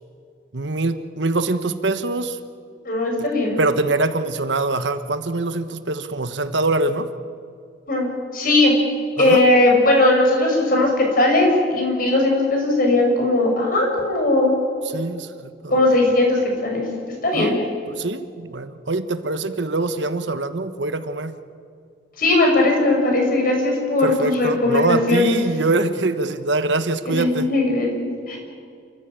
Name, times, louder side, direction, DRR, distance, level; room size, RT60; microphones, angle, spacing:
voice 1, 0.5-2.4 3.6-7.1 9.2-9.4 14.9-15.8 17.3-17.6 17.9-21.4 24.0-27.5, right 2 dB, 85° right, 10 dB, 1.3 m, -24 dB
voice 2, 2.8-3.6 7.9-8.7 9.2-14.5 15.7-16.8 17.2-17.6 22.2-25.3 27.0-28.4, left 2 dB, 50° left, 1 dB, 6.1 m, -18 dB
28.5 x 15.0 x 9.0 m, 2.3 s
head